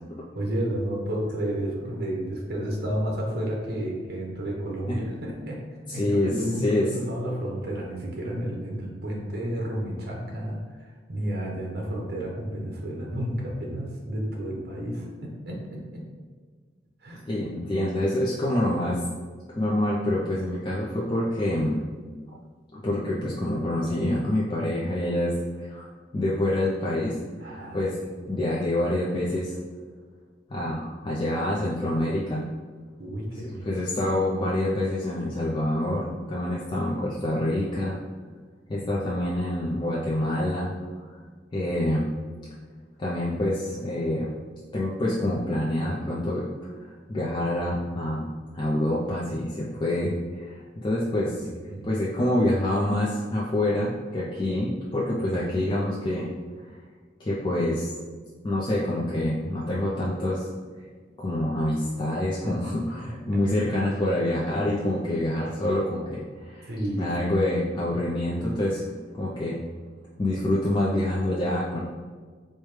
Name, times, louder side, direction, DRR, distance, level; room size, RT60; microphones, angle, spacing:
voice 1, 0.3-5.6 5.9-16.1 17.0-17.5 27.4-28.2 33.0-33.7 38.7-38.9 51.4-51.9 61.3-61.4 62.4-62.8 63.1-63.4 66.7-67.1, right 1 dB, 60° right, -1 dB, 0.8 m, -32 dB
voice 2, 5.9-6.3 6.6-6.9 17.3-19.0 19.5-21.9 22.7-25.9 26.1-27.1 27.4-27.9 28.3-29.5 30.5-32.5 33.3-38.0 38.7-40.7 41.5-42.1 43.0-44.3 44.7-46.7 47.1-48.3 48.5-51.4 51.8-56.3 57.2-57.9 58.4-60.5 61.2-66.7 67.0-68.8 69.1-69.6 70.2-71.8, left 1 dB, 25° left, -5 dB, 0.4 m, -26 dB
4.9 x 2.1 x 3.1 m, 1.5 s
head